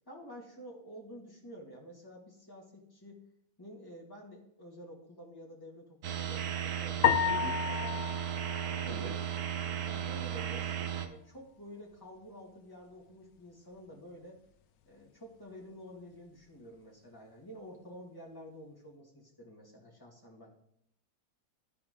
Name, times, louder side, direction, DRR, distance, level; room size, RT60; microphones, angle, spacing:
voice 1, 0.1-3.2 3.6-8.1 8.6-9.1 9.8-14.4 14.8-20.5, equal, 15° left, -3 dB, 1.9 m, -50 dB
sound 1, 6.0-11.1, right 9 dB, 85° right, 1.2 m, -35 dB
sound 2, 7.0-9.5, left 9 dB, 70° left, 0.9 m, -31 dB
voice 2, 7.3-7.6 8.9-9.2, right 1 dB, 55° right, -1 dB, 2.2 m, -42 dB
13.5 x 4.7 x 3.7 m, 0.74 s
omnidirectional pair, 1.6 m